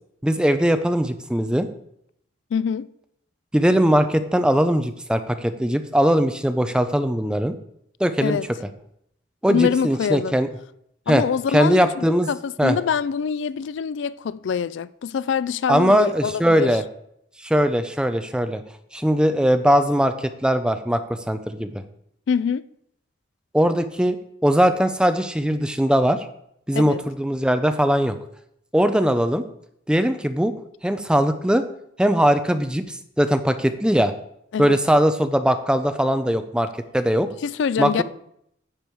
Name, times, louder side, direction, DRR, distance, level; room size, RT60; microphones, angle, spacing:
voice 1, 0.2-1.7 3.5-7.5 8.0-8.4 9.4-10.5 11.1-11.2 11.5-12.3 12.6-12.8 15.7-16.8 17.4-18.6 18.9-21.8 23.5-24.2 24.4-26.2 26.7-28.2 28.7-29.4 29.9-30.5 30.8-31.6 32.0-34.1 34.6-36.7 36.9-37.3 37.8-38.0, equal, 5° right, 0.5 m, -20 dB
voice 2, 2.5-2.9 8.2-8.5 9.5-10.4 11.1-16.7 22.3-22.6 26.7-27.0 34.5-34.8 37.4-38.0, left 6 dB, 75° left, 0.3 m, -24 dB
10.0 x 6.9 x 4.6 m
head